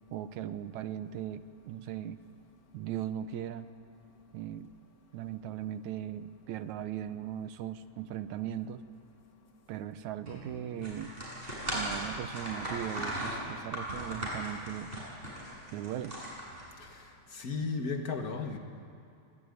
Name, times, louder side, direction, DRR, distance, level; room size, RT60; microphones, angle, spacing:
voice 1, 0.1-2.2 2.7-3.7 4.3-4.7 5.1-8.8 9.7-11.2 11.7-14.9 15.7-16.2, right 10 dB, 75° right, 11 dB, 2.0 m, -38 dB
sound 1, 10.3-12.2, left 3 dB, 40° right, 8.0 m, -51 dB
sound 2, 10.8-16.9, right 1 dB, 15° right, 7.4 m, -37 dB
voice 2, 17.3-18.6, left 4 dB, 40° left, 5 dB, 1.4 m, -35 dB
25.0 x 17.0 x 9.6 m, 2.5 s
omnidirectional pair, 3.6 m